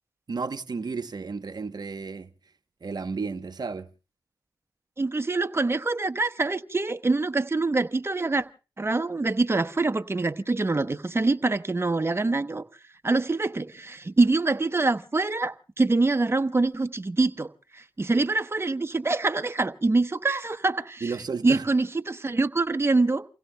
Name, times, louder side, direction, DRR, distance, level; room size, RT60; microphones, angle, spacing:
voice 1, 0.3-2.3 2.8-3.9 21.0-21.7, right 4 dB, 55° right, 0.9 m, -32 dB
voice 2, 5.0-8.4 8.8-12.6 13.0-21.1 21.4-23.2, right 3 dB, 30° right, 1.0 m, -25 dB
29.5 x 16.5 x 2.2 m
cardioid pair, 45°, 8 cm